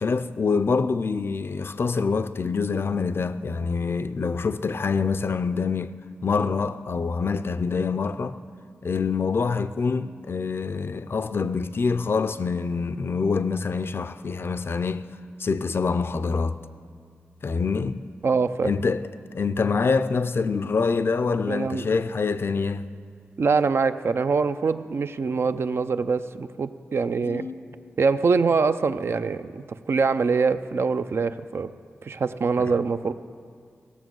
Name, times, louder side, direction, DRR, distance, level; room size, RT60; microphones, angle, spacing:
voice 1, 0.0-8.4 8.8-15.1 15.4-16.6 17.4-18.0 18.6-19.1 19.3-22.9 27.2-27.8 32.6-32.7, left 4 dB, 55° left, 0.5 m, -26 dB
voice 2, 18.2-18.7 21.5-21.9 23.4-27.5 28.0-31.7 32.0-33.1, right 4 dB, 60° right, 0.4 m, -24 dB
16.0 x 7.0 x 6.2 m
cardioid pair, 55°, 5 cm